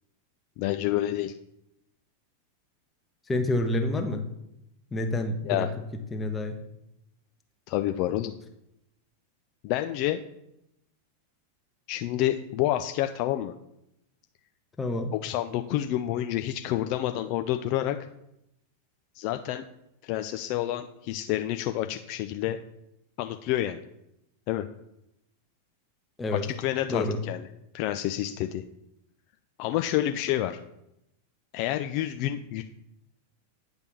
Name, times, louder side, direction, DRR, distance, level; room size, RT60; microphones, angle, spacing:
voice 1, 0.6-1.3 5.5-5.7 7.7-8.3 9.6-10.2 11.9-13.5 15.1-18.0 19.1-19.6 20.0-22.6 23.2-23.8 24.5-24.7 26.3-27.4 27.7-28.6 29.6-30.6 31.5-32.6, left 13 dB, 45° left, 8 dB, 0.4 m, -28 dB
voice 2, 3.3-4.3 4.9-5.7 6.1-6.6 14.8-15.1 26.2-26.4 26.9-27.2, left 2 dB, 15° left, 5 dB, 1.0 m, -28 dB
9.6 x 3.5 x 5.9 m, 0.83 s
figure-of-eight pair, 90°, 0 cm